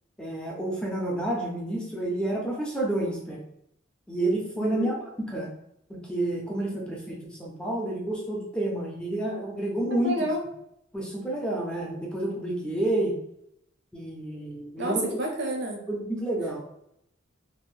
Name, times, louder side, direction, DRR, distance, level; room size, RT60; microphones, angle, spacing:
voice 1, 0.2-3.4 4.1-5.5 5.9-10.2 10.9-13.1 13.9-15.1 15.9-16.6, right 1 dB, 5° left, -3 dB, 0.4 m, -29 dB
voice 2, 4.6-4.9 9.9-10.4 14.8-15.8, right 1 dB, 55° right, 1 dB, 0.6 m, -29 dB
3.4 x 2.0 x 2.4 m, 0.76 s
head